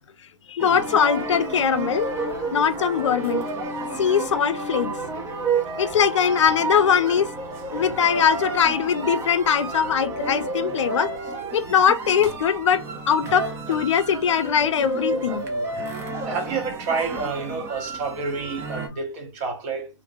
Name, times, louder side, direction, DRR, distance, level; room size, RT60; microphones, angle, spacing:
voice 1, 0.5-2.1 2.5-3.4 4.0-4.9 5.8-7.3 7.7-11.1 11.5-15.4, left 7 dB, 65° left, 0.5 m, -21 dB
sound 1, 0.6-18.9, right 3 dB, 15° right, 0.4 m, -31 dB
voice 2, 16.2-19.9, right 4 dB, 35° right, 0.9 m, -29 dB
2.8 x 2.6 x 2.5 m
hypercardioid pair, 140°, 16 cm